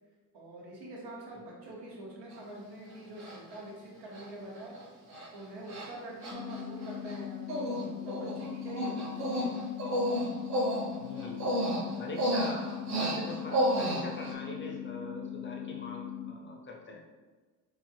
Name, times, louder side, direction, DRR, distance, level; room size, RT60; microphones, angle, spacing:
voice 1, 0.3-4.8 5.3-9.4, right 1 dB, 65° right, -3 dB, 1.2 m, -45 dB
Human voice, 2.3-2.4 3.2-3.6 4.1-4.2 4.6-4.8 5.1-5.3 5.7-5.9 6.2-7.2 7.5-7.8 8.1-14.3, equal, 40° right, 0.9 m, -31 dB
sound 1, 6.3-16.3, left 10 dB, 85° left, 0.5 m, -40 dB
voice 2, 11.0-11.5 12.0-17.0, left 2 dB, 25° left, 0 dB, 0.8 m, -43 dB
3.0 x 2.6 x 2.7 m, 1.3 s
hypercardioid pair, 50°, 44 cm